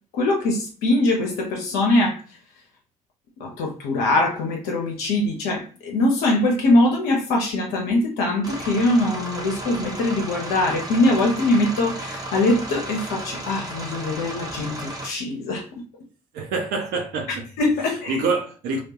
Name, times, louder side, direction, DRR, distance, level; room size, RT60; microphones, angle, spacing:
voice 1, 0.1-2.2 3.4-15.7 17.6-18.3, left 2 dB, 65° left, 0.5 m, -22 dB
sound 1, 8.4-15.1, right 1 dB, 20° right, 0.8 m, -34 dB
voice 2, 16.3-17.5 18.1-18.8, right 4 dB, 60° right, 0.6 m, -26 dB
2.2 x 2.1 x 2.8 m
figure-of-eight pair, 50°, 18 cm